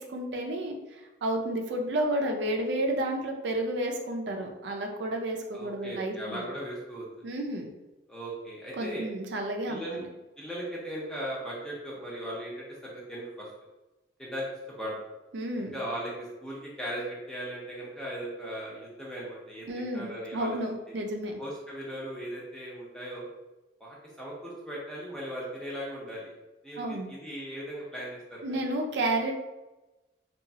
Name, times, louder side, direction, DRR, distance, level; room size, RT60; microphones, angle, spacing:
voice 1, 0.0-6.5 7.2-7.7 8.8-10.0 15.3-15.7 19.7-21.4 26.8-27.1 28.4-29.4, right 1 dB, 75° right, 2 dB, 0.4 m, -31 dB
voice 2, 5.5-7.3 8.1-9.0 9.7-10.0 10.4-13.5 14.2-14.4 14.8-14.9 15.6-20.6 21.4-23.3 23.8-26.3 26.6-28.5, right 1 dB, 5° left, -5 dB, 0.6 m, -38 dB
2.8 x 2.3 x 2.7 m, 1.1 s
head